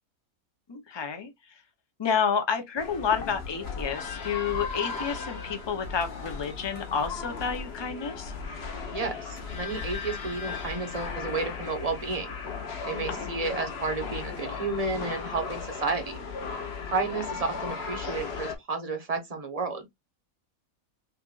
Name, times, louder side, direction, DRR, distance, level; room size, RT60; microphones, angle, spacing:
voice 1, 0.7-1.3 2.0-8.3 13.2-13.3, left 6 dB, 25° left, 0.6 m, -30 dB
sound 1, 2.8-18.5, left 5 dB, 50° left, 1.2 m, -36 dB
voice 2, 8.9-12.3 12.8-16.2 16.9-19.9, right 3 dB, 30° right, 0.9 m, -32 dB
5.7 x 2.5 x 2.4 m
omnidirectional pair, 1.5 m